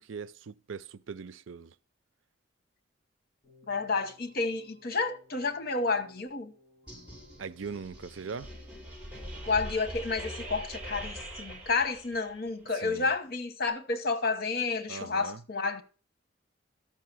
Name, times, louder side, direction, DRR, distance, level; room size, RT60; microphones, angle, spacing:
voice 1, 0.0-1.7 7.4-8.5 12.7-13.1 14.9-15.4, right 5 dB, 85° right, 0.5 m, -40 dB
Keyboard (musical), 3.4-8.8, left 2 dB, 30° left, 6.9 m, -60 dB
voice 2, 3.7-6.5 9.5-15.8, left 4 dB, 55° left, 1.1 m, -30 dB
sound 1, 6.9-12.5, right 1 dB, 5° right, 7.3 m, -43 dB
13.0 x 5.9 x 6.1 m
head